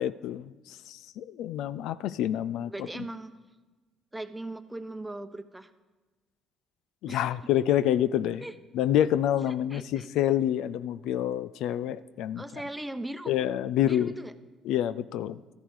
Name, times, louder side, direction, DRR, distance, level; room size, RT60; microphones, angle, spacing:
voice 1, 0.0-2.9 7.0-8.4 8.7-12.4 13.3-14.1 14.6-15.4, left 11 dB, 75° left, 16 dB, 0.3 m, -27 dB
voice 2, 2.6-3.3 4.1-5.7 7.1-7.2 8.4-8.5 9.5-10.1 12.4-13.3 13.8-14.3, right 1 dB, 10° right, 10 dB, 0.9 m, -39 dB
13.0 x 10.0 x 4.7 m, 1.2 s
supercardioid pair, 65°, 0 cm